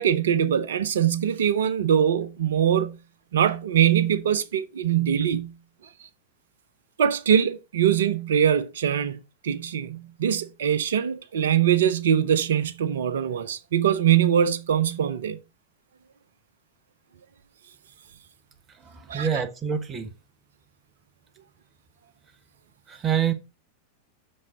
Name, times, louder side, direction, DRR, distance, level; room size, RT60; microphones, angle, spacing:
voice 1, 0.0-3.0 3.3-5.5 7.0-9.2 9.4-15.4 19.1-19.3, right 9 dB, 60° right, 0.8 m, -22 dB
voice 2, 18.8-20.1 22.9-23.3, right 8 dB, 25° right, 1.3 m, -26 dB
7.7 x 6.4 x 3.9 m
figure-of-eight pair, 90°, 0 cm